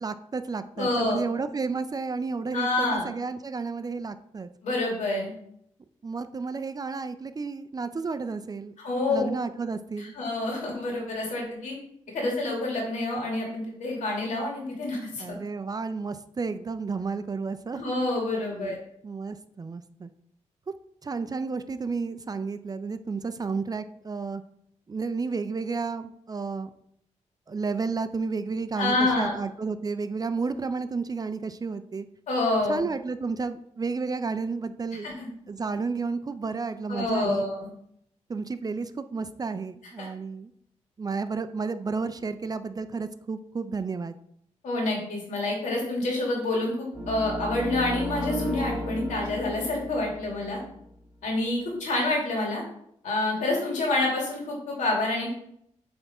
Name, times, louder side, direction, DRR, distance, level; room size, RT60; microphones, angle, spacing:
voice 1, 0.0-4.5 6.0-8.7 9.1-10.1 15.2-17.8 18.5-18.8 19.0-20.1 21.0-24.4 24.9-26.7 27.5-32.1 32.7-35.1 35.5-37.5 38.3-40.5 41.0-44.2, right 4 dB, 30° right, 11 dB, 0.4 m, -32 dB
voice 2, 0.8-1.2 2.5-3.0 4.6-5.3 8.8-9.3 10.0-11.8 12.1-15.4 17.8-18.8 28.8-29.3 32.3-32.8 35.0-35.3 36.9-37.7 40.0-40.1 44.6-50.6 51.2-52.6 53.0-55.3, left 2 dB, 90° left, -1 dB, 2.3 m, -27 dB
sound 1, 46.9-50.9, equal, 5° right, 2.0 m, -34 dB
7.9 x 3.5 x 4.2 m, 0.72 s
cardioid pair, 80°, 12 cm